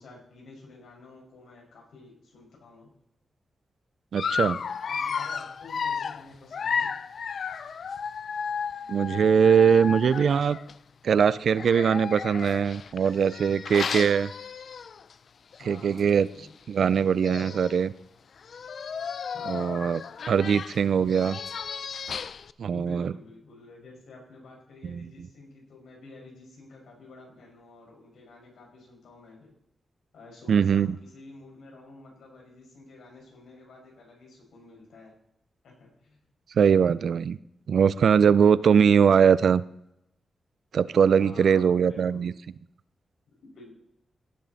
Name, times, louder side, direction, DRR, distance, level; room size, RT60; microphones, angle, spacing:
voice 1, 0.0-2.9 4.4-6.9 15.6-16.5 19.3-19.7 22.7-29.5 30.1-35.2 35.6-36.2 41.2-42.3 43.4-43.7, left 3 dB, 90° left, -2 dB, 5.3 m, -49 dB
voice 2, 4.1-4.6 8.9-10.6 11.0-14.3 15.7-16.3 16.7-17.9 19.5-20.0 20.3-21.4 22.6-23.1 24.8-25.0 30.5-30.9 36.6-37.4 37.7-39.6 40.7-42.3, right 7 dB, 75° right, 18 dB, 0.4 m, -21 dB
Dog, 4.2-10.7 11.5-15.1 15.5-15.7 16.0-16.1 16.9-17.0 17.2-17.8 18.4-22.5, left 6 dB, 65° left, 0.4 m, -33 dB
17.0 x 7.4 x 4.1 m, 0.82 s
cardioid pair, 80°, 0 cm